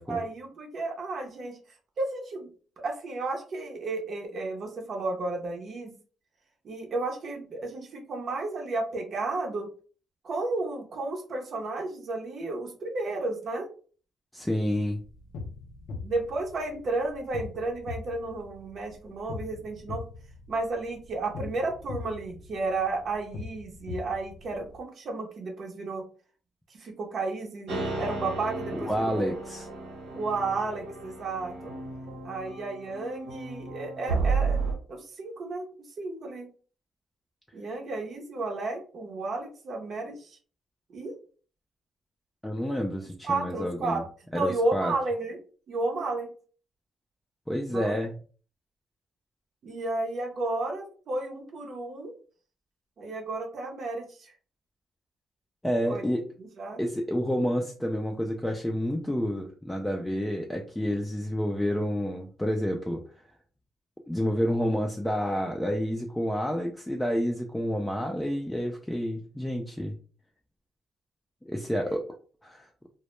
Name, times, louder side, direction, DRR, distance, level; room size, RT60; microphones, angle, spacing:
voice 1, 0.1-1.6 2.0-2.5 2.8-5.9 6.6-9.7 10.2-13.7 16.0-20.0 20.5-26.0 26.7-29.3 30.1-31.7 32.2-34.6 34.9-35.6 36.0-36.5 37.5-40.4 40.9-41.1 43.2-44.0 44.3-45.4 45.7-46.3 47.7-48.0 49.6-52.1 53.0-54.3 55.9-56.0 56.4-56.8, right 3 dB, 55° right, 1 dB, 0.6 m, -32 dB
voice 2, 14.3-15.0 28.7-29.7 42.4-44.0 44.3-44.9 47.5-48.1 55.6-56.3 56.8-63.0 64.1-69.9 71.4-72.0 72.4-72.7, equal, 10° left, 2 dB, 0.3 m, -29 dB
sound 1, 14.9-24.8, left 4 dB, 85° left, 0.5 m, -42 dB
sound 2, 27.7-34.7, right 4 dB, 80° right, 0.9 m, -33 dB
2.1 x 2.1 x 3.0 m, 0.40 s
cardioid pair, 90°, 0 cm